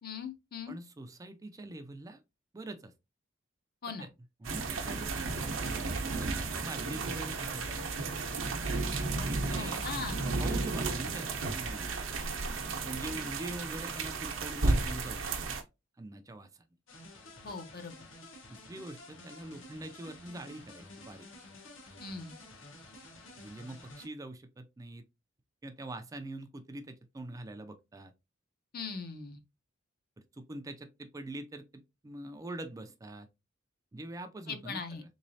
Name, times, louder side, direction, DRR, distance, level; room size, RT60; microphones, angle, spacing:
voice 1, 0.0-0.7 3.8-4.1 9.5-10.2 17.4-17.9 22.0-22.3 28.7-29.4 34.5-35.0, left 5 dB, 50° left, 0.6 m, -40 dB
voice 2, 0.7-2.2 2.5-2.9 4.0-4.1 4.4-7.9 9.3-9.8 10.4-11.9 12.8-15.4 16.0-16.5 18.5-21.3 23.4-25.0 25.6-28.1 30.3-33.3 33.9-35.0, right 1 dB, 15° right, 0.3 m, -44 dB
sound 1, 4.4-15.6, right 3 dB, 85° right, 0.7 m, -33 dB
sound 2, 16.9-24.1, left 2 dB, 70° left, 1.1 m, -51 dB
3.7 x 3.1 x 2.6 m
head